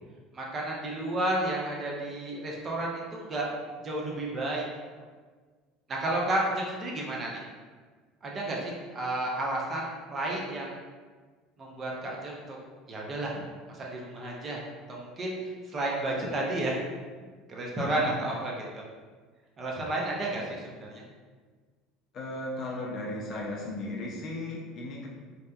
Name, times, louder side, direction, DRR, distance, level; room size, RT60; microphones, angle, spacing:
voice 1, 0.3-3.5 3.8-4.6 5.9-7.4 8.2-10.7 11.6-12.6 12.9-13.4 13.7-14.6 14.9-16.7 17.5-18.8 19.6-21.0, right 1 dB, 25° right, -2 dB, 0.4 m, -32 dB
voice 2, 17.8-18.2 22.1-25.1, left 2 dB, 40° left, -2 dB, 0.5 m, -35 dB
2.7 x 2.2 x 2.2 m, 1.5 s
cardioid pair, 145°, 0 cm